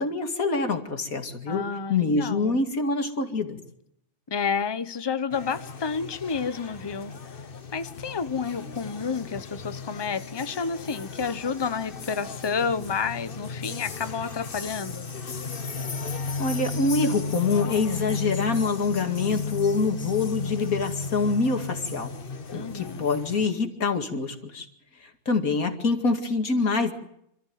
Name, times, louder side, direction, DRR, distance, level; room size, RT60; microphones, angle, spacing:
voice 1, 0.0-3.6 16.4-22.1 22.5-24.7 25.0-26.9, left 4 dB, 60° left, 2.7 m, -25 dB
voice 2, 1.5-2.6 4.3-7.1 7.7-15.1 22.5-23.1, left 5 dB, 20° left, 0.7 m, -30 dB
sound 1, 5.3-23.5, left 4 dB, 40° left, 1.2 m, -35 dB
27.0 x 14.0 x 9.4 m
omnidirectional pair, 1.7 m